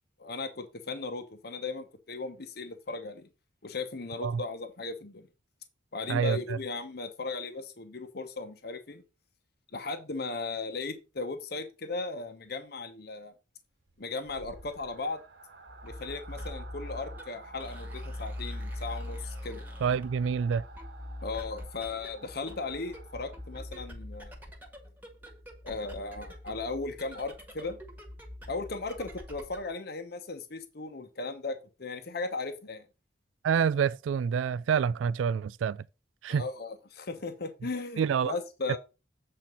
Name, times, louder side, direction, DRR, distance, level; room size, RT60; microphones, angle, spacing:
voice 1, 0.2-3.3 3.6-5.3 5.9-9.0 9.7-13.3 14.0-15.2 15.8-19.6 21.2-24.3 25.6-27.8 28.5-32.8 36.3-38.8, left 3 dB, 55° left, 1.0 m, -37 dB
voice 2, 6.1-6.6 19.8-20.6 33.4-35.8 36.2-36.4 38.0-38.3 38.7-38.8, right 7 dB, 90° right, 0.3 m, -27 dB
sound 1, 13.8-23.8, right 3 dB, 60° right, 1.2 m, -52 dB
sound 2, 15.7-29.7, left 1 dB, 10° right, 1.4 m, -43 dB
7.7 x 4.3 x 5.4 m
head